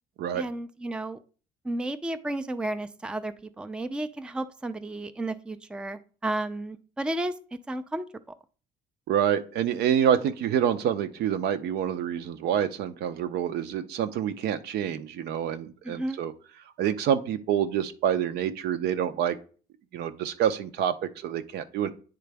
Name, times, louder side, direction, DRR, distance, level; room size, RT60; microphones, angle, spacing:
voice 1, 0.3-1.2 1.6-7.3 7.7-8.0 15.8-16.2, right 1 dB, 5° right, 10 dB, 0.4 m, -32 dB
voice 2, 9.1-16.3 16.8-19.4 19.9-21.9, right 9 dB, 75° right, 10 dB, 0.7 m, -27 dB
9.4 x 3.8 x 3.4 m, 0.40 s
cardioid pair, 110°, 17 cm